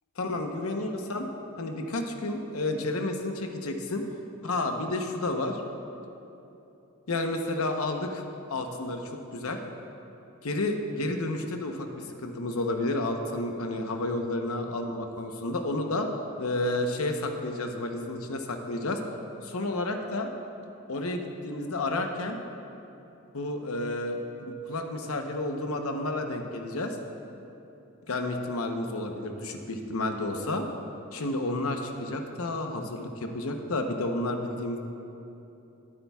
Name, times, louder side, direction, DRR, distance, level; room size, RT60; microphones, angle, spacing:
voice 1, 0.2-1.3 1.6-4.0 4.4-5.6 7.1-8.2 8.5-9.6 10.4-16.1 16.4-19.0 19.4-20.3 20.9-22.4 23.3-27.0 28.1-30.7 31.1-34.8, left 2 dB, 80° left, 4 dB, 0.9 m, -31 dB
20.0 x 8.5 x 2.4 m, 3.0 s
head